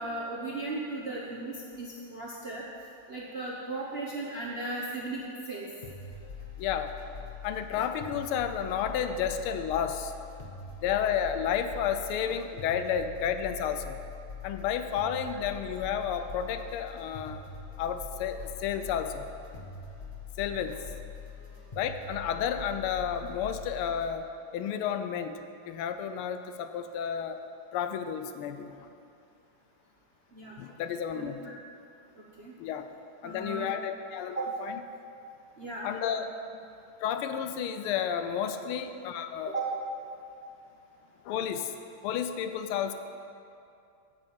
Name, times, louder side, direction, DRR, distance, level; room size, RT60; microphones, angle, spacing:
voice 1, 0.0-2.6 3.1-5.7 30.3-30.5 31.1-31.5 32.4-32.5 33.2-33.7 34.3-34.5 35.6-35.8 36.1-36.2 39.4-39.7, right 2 dB, 45° right, -5 dB, 0.8 m, -36 dB
sound 1, 5.8-24.1, left 5 dB, 40° left, 0.6 m, -43 dB
voice 2, 6.6-6.9 7.4-10.1 10.8-14.0 14.4-17.4 17.8-19.3 20.4-20.8 21.8-24.3 24.5-25.4 25.7-27.4 27.7-28.9 30.6-31.4 32.6-32.9 33.2-34.7 35.8-36.3 37.0-39.5 41.2-41.7 42.0-42.9, left 8 dB, 80° left, 9 dB, 1.5 m, -31 dB
8.1 x 7.0 x 7.4 m, 2.6 s
omnidirectional pair, 2.4 m